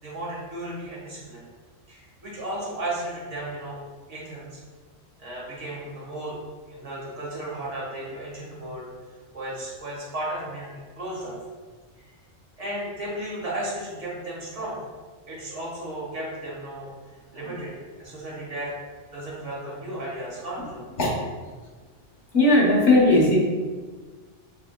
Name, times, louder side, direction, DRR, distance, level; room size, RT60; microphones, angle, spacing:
voice 1, 0.0-1.4 1.9-3.8 4.1-4.6 5.2-6.4 6.7-8.9 9.3-11.4 12.0-12.1 12.6-14.8 15.3-16.9 17.3-18.7 19.1-20.8, right 1 dB, 70° right, -5 dB, 1.7 m, -34 dB
voice 2, 22.3-23.4, left 2 dB, 65° left, -4 dB, 1.4 m, -17 dB
6.6 x 3.4 x 2.2 m, 1.4 s
omnidirectional pair, 1.3 m